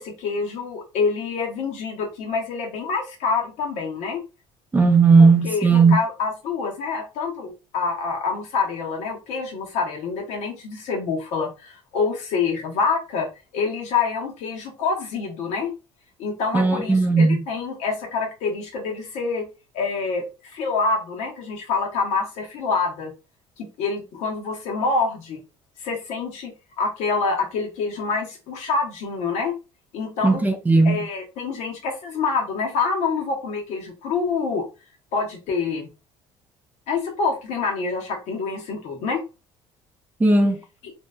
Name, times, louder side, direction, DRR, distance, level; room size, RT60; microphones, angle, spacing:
voice 1, 0.0-4.2 5.2-15.7 16.2-19.5 19.7-23.1 23.6-25.4 25.8-26.5 26.8-29.5 29.9-30.4 30.8-34.7 35.1-35.9 36.9-39.2, left 4 dB, 75° left, 0.9 m, -26 dB
voice 2, 4.7-6.0 16.5-17.4 30.2-31.1 40.2-40.6, right 4 dB, 15° right, 0.5 m, -16 dB
2.7 x 2.2 x 2.2 m
supercardioid pair, 90°, 12 cm